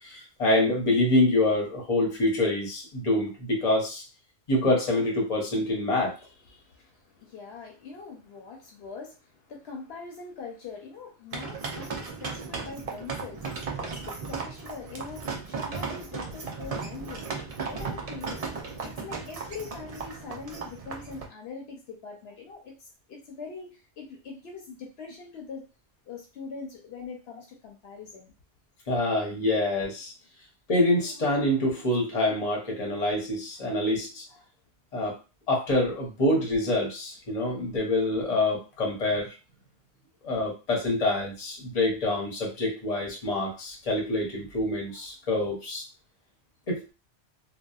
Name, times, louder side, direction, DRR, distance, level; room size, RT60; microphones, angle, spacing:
voice 1, 0.0-4.0 4.5-6.2 28.9-30.1 30.7-34.3 34.9-35.2 35.5-39.4 40.2-45.8 46.7-46.9, left 1 dB, 40° left, 0 dB, 0.8 m, -26 dB
voice 2, 6.2-17.4 17.6-18.4 18.8-25.7 26.1-28.3, left 4 dB, 70° left, 1 dB, 0.8 m, -43 dB
sound 1, 11.3-21.3, right 4 dB, 45° right, 0.5 m, -36 dB
2.7 x 2.2 x 2.3 m, 0.30 s
omnidirectional pair, 1.1 m